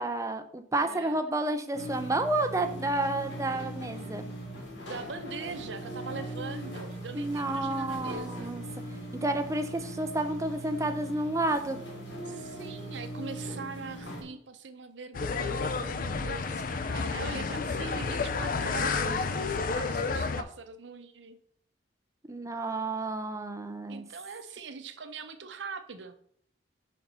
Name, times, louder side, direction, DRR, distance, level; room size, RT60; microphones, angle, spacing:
voice 1, 0.0-4.2 7.1-8.6 9.2-11.8 22.3-24.0, right 2 dB, 15° right, 8 dB, 0.5 m, -30 dB
voice 2, 0.8-1.3 4.9-8.5 12.2-21.4 23.9-26.1, right 4 dB, 75° right, 9 dB, 0.7 m, -42 dB
sound 1, 1.7-14.2, right 1 dB, 80° left, 2.0 m, -40 dB
sound 2, 15.1-20.4, left 4 dB, 45° left, 0.4 m, -30 dB
5.3 x 4.4 x 5.4 m, 0.63 s
head